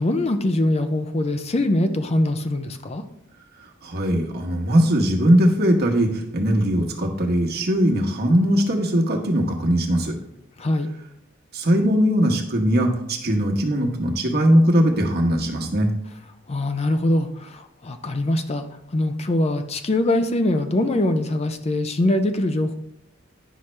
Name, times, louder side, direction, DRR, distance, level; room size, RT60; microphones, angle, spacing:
voice 1, 0.0-3.0 10.6-10.9 16.5-18.6 18.9-22.8, left 1 dB, 30° left, 8 dB, 0.5 m, -22 dB
voice 2, 3.8-10.1 11.5-15.9, equal, 50° right, 1 dB, 1.3 m, -20 dB
10.0 x 5.7 x 3.2 m, 0.80 s
head